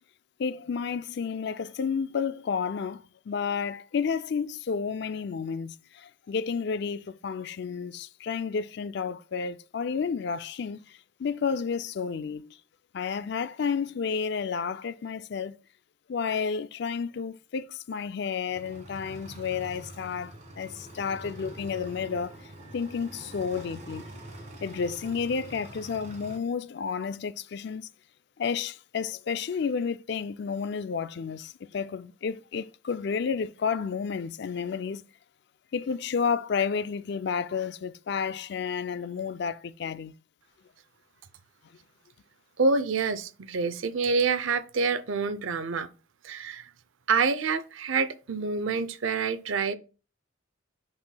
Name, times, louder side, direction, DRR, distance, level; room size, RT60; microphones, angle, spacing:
voice 1, 0.4-12.6 12.9-15.6 16.1-22.3 22.7-24.1 24.6-27.9 28.4-35.0 35.7-40.1, left 6 dB, 55° left, 0.4 m, -31 dB
sound 1, 18.5-26.4, right 1 dB, 35° right, 1.8 m, -45 dB
voice 2, 42.6-45.9 46.2-46.7 47.1-49.8, right 4 dB, 70° right, 0.6 m, -27 dB
8.6 x 5.6 x 2.2 m
head